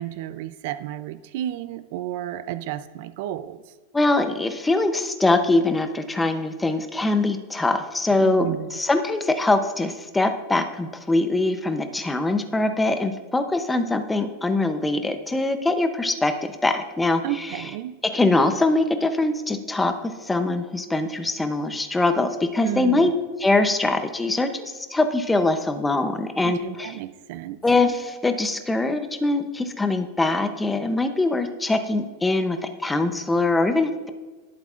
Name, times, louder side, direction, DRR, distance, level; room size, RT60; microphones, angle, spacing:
voice 1, 0.0-3.6 8.2-8.7 17.2-17.9 22.6-23.1 26.4-27.6, right 13 dB, 55° right, 13 dB, 0.4 m, -32 dB
voice 2, 3.9-17.6 18.0-23.1 23.4-26.9 27.6-32.6 32.8-34.1, left 2 dB, 5° left, 7 dB, 0.7 m, -23 dB
19.0 x 8.1 x 2.5 m, 1.3 s
supercardioid pair, 155°, 0 cm